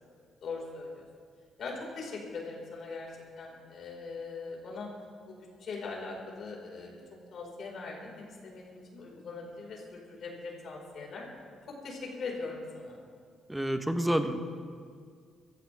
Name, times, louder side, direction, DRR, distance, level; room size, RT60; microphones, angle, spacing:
voice 1, 0.4-1.0 1.6-3.1 3.4-4.9 5.3-6.9 7.3-11.3 11.7-13.0, left 4 dB, 60° left, -1 dB, 5.1 m, -41 dB
voice 2, 13.5-14.4, right 1 dB, 5° right, 7 dB, 1.2 m, -28 dB
24.0 x 14.5 x 3.6 m, 2.1 s
cardioid pair, 90°, 0 cm